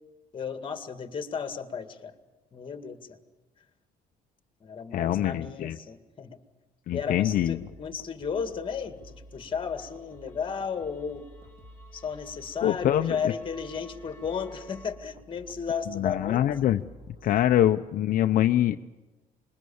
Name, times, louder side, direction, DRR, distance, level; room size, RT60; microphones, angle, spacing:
voice 1, 0.3-2.1 2.5-3.2 4.6-6.4 6.9-11.3 11.9-16.5 17.2-17.4, left 6 dB, 35° left, 8 dB, 2.1 m, -34 dB
voice 2, 4.9-5.8 6.9-7.6 12.6-13.2 15.9-16.8 17.2-18.8, left 12 dB, 65° left, 7 dB, 0.7 m, -24 dB
sound 1, 7.3-17.7, equal, 40° right, 4.1 m, -51 dB
sound 2, 9.0-14.9, equal, 20° left, 3.5 m, -55 dB
26.0 x 22.0 x 7.1 m, 1.2 s
cardioid pair, 130°, 15 cm